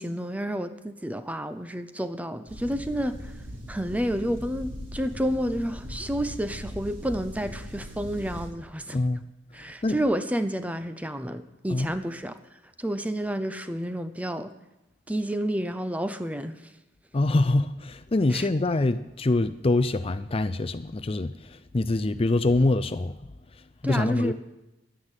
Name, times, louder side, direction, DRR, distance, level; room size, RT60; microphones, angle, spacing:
voice 1, 0.0-3.3 3.7-9.0 9.5-12.4 12.8-14.5 15.1-16.6 18.3-18.5 23.8-24.3, equal, 10° right, 0.6 m, -30 dB
sound 1, 2.5-8.5, equal, 45° right, 3.6 m, -39 dB
voice 2, 8.9-9.2 9.6-10.0 11.7-11.9 17.1-23.2 23.8-24.3, left 2 dB, 30° left, 0.5 m, -25 dB
11.5 x 9.8 x 9.0 m
head